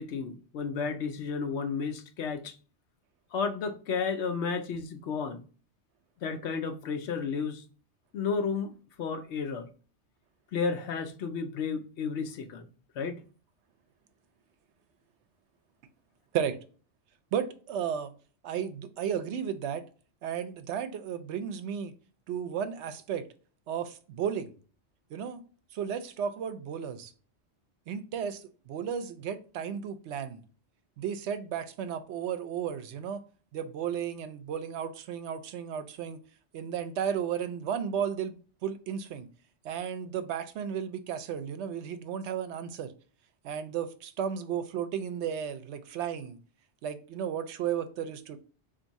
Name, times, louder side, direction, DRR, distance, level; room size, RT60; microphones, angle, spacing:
voice 1, 0.0-2.6 3.3-5.4 6.2-7.6 8.1-9.7 10.5-12.7 13.0-13.2, left 5 dB, 80° left, 0.9 m, -32 dB
voice 2, 17.3-18.1 18.4-19.9 20.2-21.9 22.3-23.3 23.7-24.5 25.1-25.4 25.7-27.1 27.9-30.4 31.0-33.2 33.5-36.2 36.5-39.3 39.6-42.9 43.4-46.4 46.8-48.4, right 8 dB, 80° right, 0.9 m, -34 dB
3.5 x 2.6 x 4.0 m
omnidirectional pair, 1.2 m